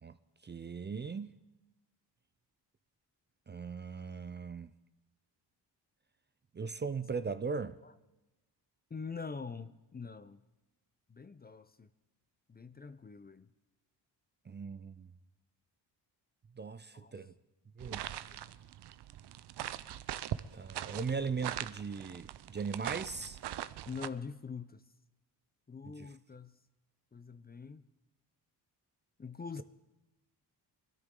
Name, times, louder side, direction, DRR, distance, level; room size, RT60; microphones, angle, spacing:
voice 1, 0.4-1.3 3.5-4.7 6.5-7.8 14.5-15.1 16.5-17.3 17.8-18.1 20.5-23.4 26.0-26.1, right 5 dB, 25° right, 0.5 m, -38 dB
voice 2, 8.9-10.4 11.1-11.9 12.5-13.5 16.9-17.2 18.3-18.4 23.9-24.8 25.7-26.6 27.1-27.8 29.2-29.6, left 5 dB, 25° left, 0.6 m, -44 dB
sound 1, 17.8-24.1, right 12 dB, 70° right, 0.7 m, -41 dB
21.5 x 13.5 x 3.8 m
cardioid pair, 90°, 42 cm